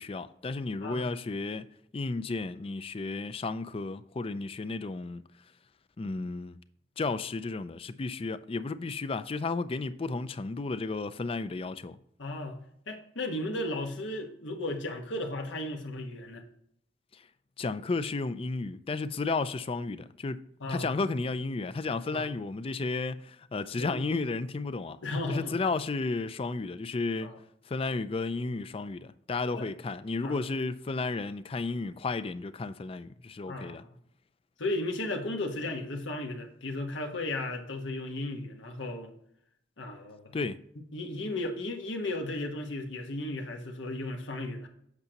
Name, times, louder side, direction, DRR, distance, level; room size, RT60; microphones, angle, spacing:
voice 1, 0.0-5.2 6.0-6.6 7.0-12.0 17.1-17.2 17.6-20.4 20.7-25.0 25.3-27.4 27.7-33.8 40.3-40.6, left 3 dB, 30° left, 0.4 m, -33 dB
voice 2, 0.8-1.1 12.2-12.6 12.9-16.4 20.6-20.9 22.1-22.3 23.8-24.0 25.0-25.5 27.2-27.4 29.5-29.7 30.2-30.4 33.5-33.9 34.6-39.1 39.8-40.3 40.9-44.7, left 2 dB, 90° left, 1.3 m, -35 dB
8.2 x 6.5 x 2.9 m
head